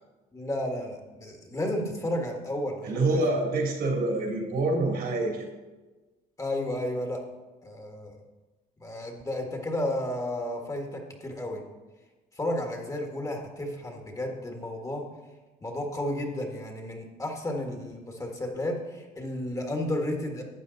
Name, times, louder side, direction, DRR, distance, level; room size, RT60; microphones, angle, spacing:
voice 1, 0.3-3.0 6.4-7.2 7.6-8.1 8.8-11.6 12.4-15.0 15.6-20.4, left 1 dB, 20° left, 2 dB, 1.8 m, -32 dB
voice 2, 2.8-5.5, right 2 dB, 65° right, 1 dB, 3.0 m, -26 dB
12.5 x 8.3 x 4.1 m, 1.2 s
cardioid pair, 110°, 17 cm